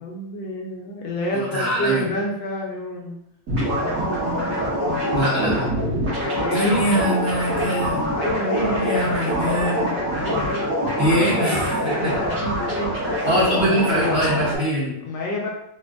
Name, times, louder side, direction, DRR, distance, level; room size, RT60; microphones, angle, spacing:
voice 1, 0.0-3.2 3.7-4.3 6.2-6.9 8.1-9.3 10.1-10.7 11.9-13.3 13.5-13.8 14.7-14.8 15.0-15.5, left 1 dB, 70° left, -1 dB, 1.2 m, -29 dB
voice 2, 1.3-2.0 5.1-5.6 6.5-8.1 8.6-9.8 11.0-12.1 13.2-15.0, equal, 75° right, -7 dB, 0.6 m, -23 dB
sound 1, 3.5-14.6, equal, 45° right, 1.6 m, -24 dB
4.1 x 2.5 x 2.3 m, 0.77 s
omnidirectional pair, 2.3 m